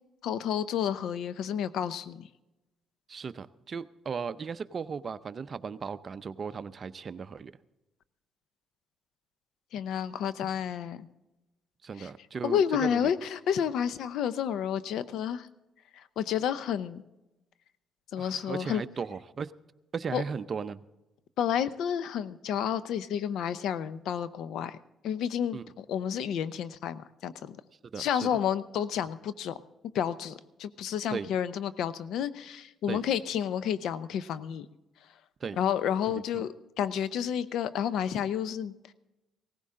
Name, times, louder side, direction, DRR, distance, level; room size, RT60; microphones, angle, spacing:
voice 1, 0.2-2.3 9.7-11.1 12.0-12.1 12.4-15.5 15.9-17.0 18.1-18.8 20.1-20.2 21.4-24.8 25.0-27.6 28.0-29.6 29.9-34.7 35.6-38.7, left 9 dB, 80° left, 15 dB, 0.6 m, -30 dB
voice 2, 3.1-7.5 11.8-12.6 12.9-13.1 18.2-19.5 19.9-20.8 25.5-25.6 27.9-28.3 31.1-31.3 32.9-33.0 35.4-35.6 36.1-36.4, right 5 dB, 45° right, 13 dB, 0.6 m, -36 dB
17.5 x 15.5 x 3.7 m, 0.99 s
cardioid pair, 90°, 0 cm